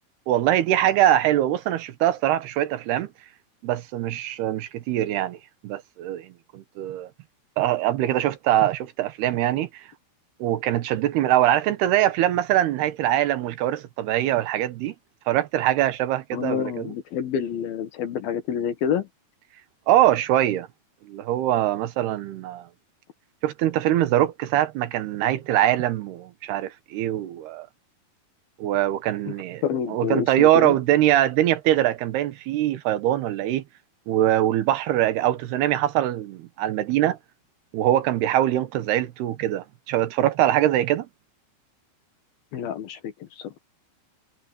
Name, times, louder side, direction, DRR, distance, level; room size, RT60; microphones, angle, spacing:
voice 1, 0.3-3.1 3.6-5.4 5.6-7.1 7.6-9.8 10.4-14.9 15.3-16.9 19.9-20.7 21.1-22.7 23.4-27.7 28.6-29.6 29.9-33.6 34.1-37.2 37.7-41.1, right 13 dB, 80° right, 3.2 m, -23 dB
voice 2, 16.3-19.1 29.6-30.7 42.5-43.5, left 8 dB, 70° left, 3.2 m, -28 dB
omnidirectional pair, 4.7 m